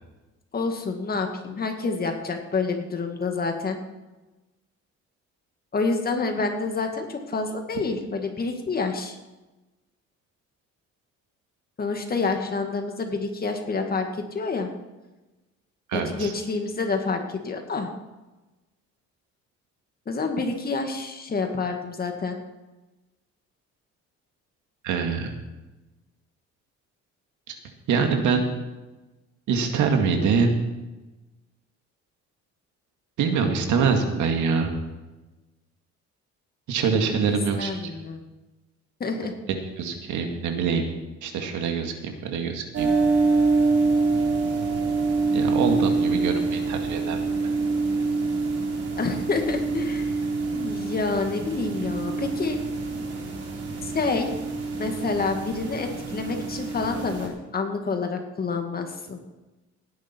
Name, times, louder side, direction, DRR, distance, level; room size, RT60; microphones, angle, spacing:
voice 1, 0.5-3.8 5.7-9.2 11.8-14.7 15.9-17.9 20.1-22.4 37.3-38.2 39.0-39.3 49.0-50.1 50.5-52.6 53.8-54.3 54.8-59.2, left 4 dB, 30° left, 4 dB, 2.0 m, -28 dB
voice 2, 15.9-16.3 24.8-25.3 27.5-27.6 27.9-28.4 29.5-30.5 33.2-34.7 36.7-37.8 39.8-40.9 41.2-42.9 45.3-47.2, right 5 dB, 80° right, 4 dB, 2.2 m, -24 dB
sound 1, 42.7-57.3, right 3 dB, 55° right, 3.6 m, -26 dB
17.5 x 10.5 x 4.6 m, 1.1 s
cardioid pair, 125°, 29 cm